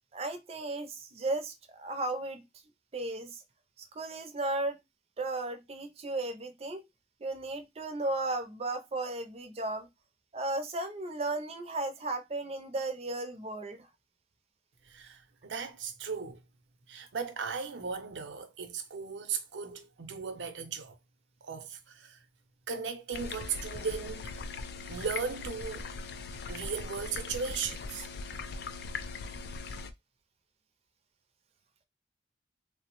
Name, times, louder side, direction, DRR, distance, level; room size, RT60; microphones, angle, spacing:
voice 1, 0.1-2.4 2.9-3.4 4.0-4.8 5.2-6.8 7.2-9.9 10.3-13.8, right 2 dB, 35° right, 0.5 m, -35 dB
voice 2, 14.9-16.4 16.9-21.0 21.4-22.2 22.7-24.3 24.9-25.9 26.5-28.1, right 5 dB, 90° right, 0.6 m, -37 dB
sound 1, 23.1-29.9, left 4 dB, 60° left, 0.4 m, -40 dB
3.2 x 2.0 x 2.9 m
head